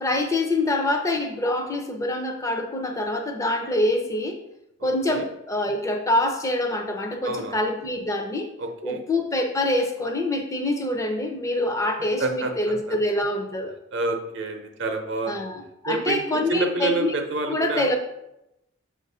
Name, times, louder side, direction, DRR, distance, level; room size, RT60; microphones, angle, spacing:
voice 1, 0.0-4.4 4.8-8.5 8.8-13.8 15.3-17.1 17.5-18.0, left 1 dB, 15° left, 4 dB, 0.6 m, -25 dB
voice 2, 4.8-5.2 7.2-7.6 8.6-9.0 12.2-12.5 12.9-13.0 13.9-15.4 15.9-16.2 16.5-17.9, right 2 dB, 60° right, 4 dB, 0.7 m, -28 dB
7.1 x 2.6 x 5.4 m, 0.88 s
head